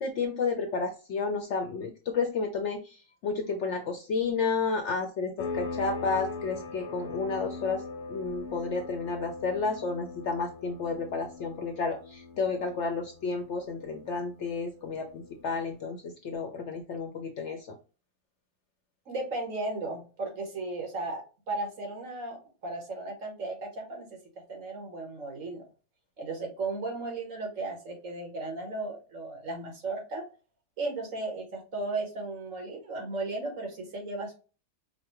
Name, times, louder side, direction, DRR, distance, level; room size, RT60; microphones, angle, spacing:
voice 1, 0.0-7.8 8.1-17.7, left 4 dB, 65° left, 5 dB, 0.7 m, -31 dB
sound 1, 5.4-15.7, left 4 dB, 90° left, 1.2 m, -41 dB
voice 2, 19.1-25.7 26.2-30.3 30.8-34.3, right 2 dB, 60° right, 2 dB, 1.4 m, -35 dB
5.2 x 2.1 x 2.9 m, 0.34 s
omnidirectional pair, 1.6 m